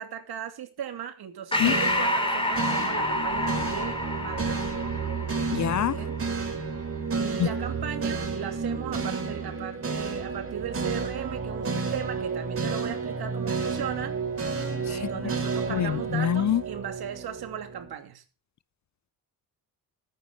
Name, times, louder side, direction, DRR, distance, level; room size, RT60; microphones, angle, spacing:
voice 1, 0.0-4.7 5.9-6.2 7.1-14.2 14.9-18.2, right 9 dB, 65° right, 2.8 m, -37 dB
Breathing, 1.5-6.4, left 1 dB, 15° left, 2.9 m, -29 dB
sound 1, 1.6-17.9, right 4 dB, 35° right, 4.2 m, -31 dB
voice 2, 5.5-6.0 7.4-7.5 14.9-15.0 15.7-16.6, left 10 dB, 45° left, 0.7 m, -25 dB
14.0 x 9.5 x 5.5 m
cardioid pair, 95°, 41 cm